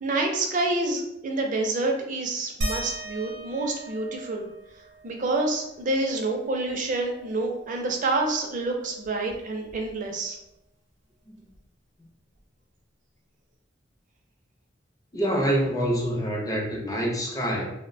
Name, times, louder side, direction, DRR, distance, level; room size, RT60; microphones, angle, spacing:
voice 1, 0.0-4.5 5.0-10.4, right 2 dB, 45° right, 2 dB, 0.4 m, -28 dB
sound 1, 2.6-7.7 8.1-8.2 8.5-10.3 11.5-11.6 12.4-12.5, right 1 dB, 80° right, 0.7 m, -38 dB
voice 2, 15.1-17.7, equal, 20° left, -1 dB, 0.5 m, -26 dB
2.4 x 2.1 x 2.5 m, 0.82 s
head